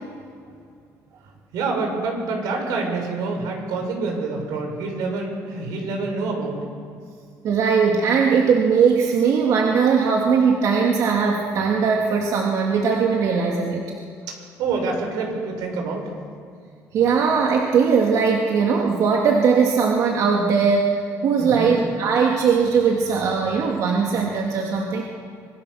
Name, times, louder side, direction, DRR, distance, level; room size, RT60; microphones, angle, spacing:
voice 1, 1.5-6.6 14.3-16.1 21.4-21.7, right 3 dB, 85° right, 2 dB, 6.4 m, -27 dB
voice 2, 7.4-13.9 16.9-25.0, right 5 dB, 60° right, 0 dB, 2.7 m, -19 dB
25.5 x 22.0 x 6.7 m, 2.3 s
cardioid pair, 115°, 6 cm